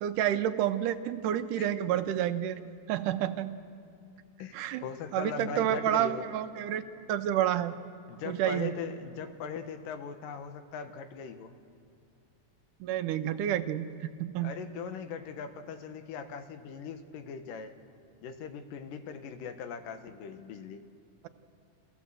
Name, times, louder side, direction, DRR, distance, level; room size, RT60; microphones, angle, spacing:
voice 1, 0.0-2.6 2.9-3.5 4.5-4.8 5.1-6.8 7.1-7.7 8.3-8.8 12.8-14.5, right 11 dB, 80° right, 10 dB, 2.2 m, -29 dB
voice 2, 4.8-6.3 8.1-11.5 14.4-17.7 18.2-20.8, left 6 dB, 85° left, 8 dB, 2.7 m, -40 dB
27.0 x 15.0 x 7.6 m, 2.5 s
omnidirectional pair, 3.8 m